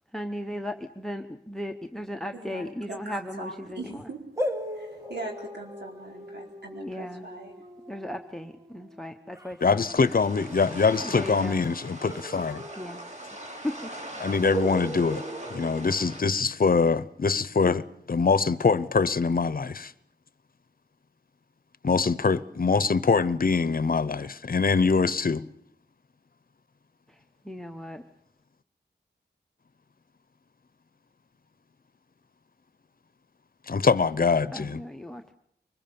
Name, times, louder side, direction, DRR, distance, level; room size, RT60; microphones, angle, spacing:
voice 1, 0.1-4.1 6.7-7.3 7.9-9.9 11.0-11.7 12.8-13.0 13.3-13.9 27.1-28.0 34.5-35.3, left 1 dB, 5° left, 1.0 m, -37 dB
voice 2, 2.3-4.2 4.7-7.5, right 2 dB, 70° right, 4.4 m, -41 dB
sound 1, 4.4-9.8 12.0-13.5 13.8-13.9 14.5-16.7, right 1 dB, 15° right, 1.5 m, -37 dB
voice 3, 9.6-12.6 14.2-15.2 15.5-19.9 21.8-25.5 33.7-34.8, left 4 dB, 55° left, 0.8 m, -24 dB
sound 2, 9.8-16.2, right 1 dB, 40° right, 3.6 m, -41 dB
24.5 x 21.5 x 7.0 m
wide cardioid pair, 85°, 18 cm